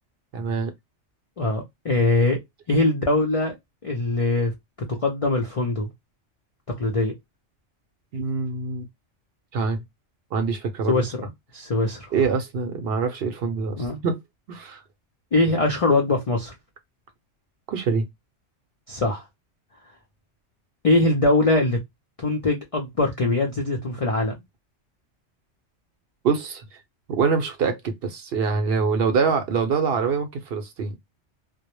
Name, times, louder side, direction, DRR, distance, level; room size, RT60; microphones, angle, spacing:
voice 1, 0.3-0.7 8.1-8.9 9.5-9.8 10.3-11.0 12.1-14.2 14.5-14.8 17.7-18.1 26.2-26.8 27.1-31.0, right 5 dB, 65° right, 0.7 m, -25 dB
voice 2, 1.4-2.4 2.7-3.5 3.8-4.5 4.9-5.9 6.7-7.2 10.9-12.1 13.8-14.0 15.3-16.5 18.9-19.2 20.8-21.8 22.2-24.3, left 2 dB, 60° left, 0.3 m, -22 dB
2.1 x 2.0 x 2.9 m
omnidirectional pair, 1.2 m